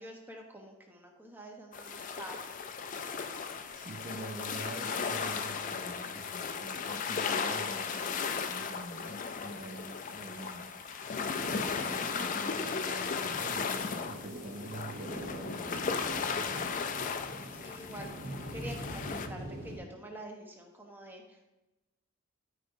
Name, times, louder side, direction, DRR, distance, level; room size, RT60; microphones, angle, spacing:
voice 1, 0.0-2.6 17.5-21.5, equal, 10° right, 1 dB, 0.9 m, -47 dB
sound 1, 1.7-19.3, left 5 dB, 35° left, 0.4 m, -36 dB
sound 2, 2.5-19.8, right 1 dB, 75° right, 1.4 m, -47 dB
voice 2, 3.7-10.7 11.4-16.8, right 2 dB, 30° right, 1 dB, 0.5 m, -46 dB
12.0 x 5.0 x 2.6 m, 1.0 s
head